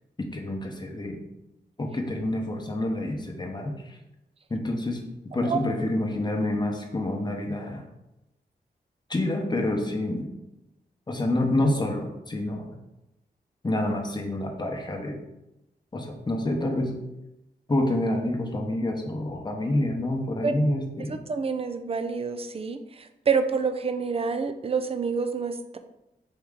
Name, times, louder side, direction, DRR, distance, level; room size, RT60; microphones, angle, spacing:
voice 1, 0.2-1.2 1.8-4.0 4.5-5.0 5.3-7.8 9.1-10.3 11.1-12.8 13.6-15.2 15.9-16.9 17.7-21.2, left 1 dB, 25° left, 2 dB, 0.9 m, -28 dB
voice 2, 21.3-22.8 23.3-25.8, right 5 dB, 35° right, 8 dB, 0.4 m, -27 dB
4.7 x 3.0 x 3.7 m, 0.93 s
wide cardioid pair, 75°, 17 cm